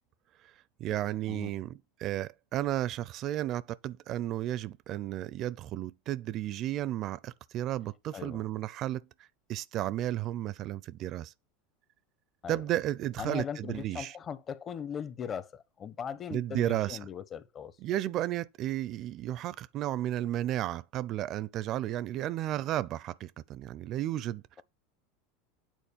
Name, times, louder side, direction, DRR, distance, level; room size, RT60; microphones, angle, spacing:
voice 1, 0.8-9.1 9.5-11.3 12.5-14.1 16.3-17.0 17.8-24.6, right 13 dB, 50° right, 0.7 m, -33 dB
voice 2, 8.1-8.5 12.4-12.7 13.2-17.8, left 7 dB, 35° left, 1.1 m, -39 dB
9.2 x 4.2 x 7.0 m
supercardioid pair, 110°, 0 cm